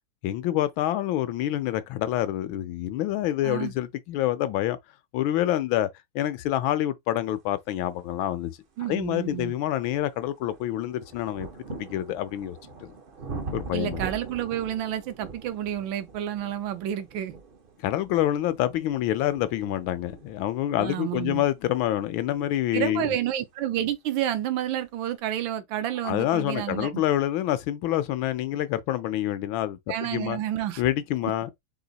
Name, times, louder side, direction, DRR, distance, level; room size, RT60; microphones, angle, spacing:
voice 1, 0.2-4.8 5.1-5.9 6.1-8.5 8.9-12.9 13.5-14.0 17.8-23.2 26.0-30.4 30.8-31.5, left 13 dB, 85° left, 1.4 m, -27 dB
voice 2, 3.4-3.7 8.8-9.5 13.7-17.3 20.8-21.4 22.7-27.0 29.9-30.8, right 11 dB, 75° right, 1.5 m, -30 dB
sound 1, 8.4-8.5 9.1-23.8 24.7-24.8, right 4 dB, 50° right, 0.6 m, -43 dB
4.8 x 2.4 x 4.0 m
omnidirectional pair, 2.1 m